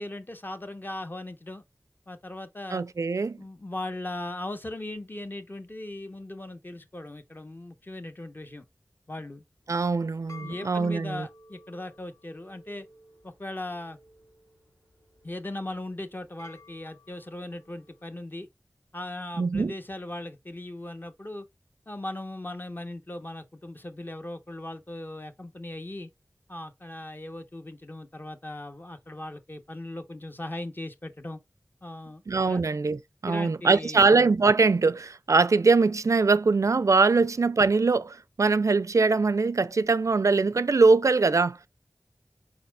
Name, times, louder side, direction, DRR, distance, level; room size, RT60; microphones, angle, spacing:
voice 1, 0.0-1.6 2.1-2.8 3.4-8.6 9.1-9.4 10.4-12.9 13.2-14.0 15.2-18.5 18.9-21.5 21.9-26.1 26.5-31.4 31.8-32.6 33.3-34.1, left 1 dB, 35° left, 0.9 m, -38 dB
voice 2, 2.7-3.4 9.7-11.3 19.4-19.7 32.3-41.6, right 4 dB, 65° right, 0.4 m, -22 dB
sound 1, 9.7-18.2, left 3 dB, 80° left, 3.0 m, -54 dB
4.6 x 4.2 x 2.2 m
wide cardioid pair, 45°, 6 cm